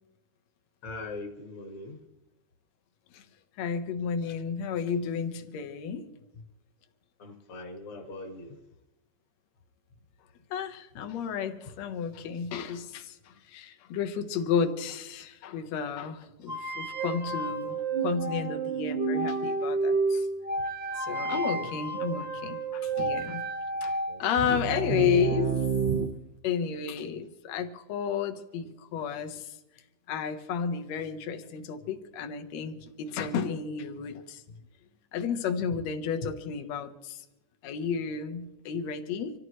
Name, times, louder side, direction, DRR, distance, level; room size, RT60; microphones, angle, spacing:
voice 1, 0.8-2.0 7.2-8.6 21.2-21.7 23.9-24.2, left 2 dB, 50° left, 1 dB, 2.4 m, -42 dB
voice 2, 3.6-6.1 10.5-20.3 21.0-23.4 23.8-25.6 26.4-29.6 30.1-34.4 35.1-37.3 37.6-39.3, left 7 dB, 65° left, 6 dB, 2.4 m, -32 dB
sound 1, 16.5-26.1, right 4 dB, 40° right, 0.9 m, -30 dB
26.5 x 14.0 x 3.2 m, 0.98 s
omnidirectional pair, 3.5 m